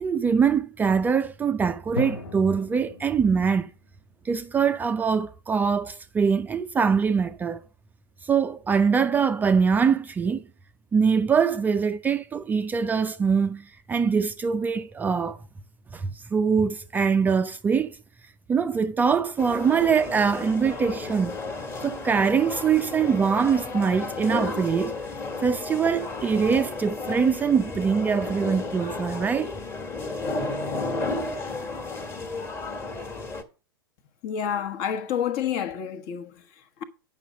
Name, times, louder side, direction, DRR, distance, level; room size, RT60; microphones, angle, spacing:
voice 1, 0.0-3.7 4.2-7.6 8.2-10.4 10.9-15.4 15.9-18.0 18.5-21.4 21.8-24.9 25.4-29.5, right 6 dB, 15° right, 0.4 m, -23 dB
Drum, 2.0-3.9, left 4 dB, 80° left, 0.8 m, -37 dB
sound 1, 19.4-33.4, left 3 dB, 20° left, 1.4 m, -33 dB
voice 2, 34.2-36.8, left 8 dB, 45° left, 1.1 m, -29 dB
8.9 x 5.6 x 6.2 m
figure-of-eight pair, 105°, 12 cm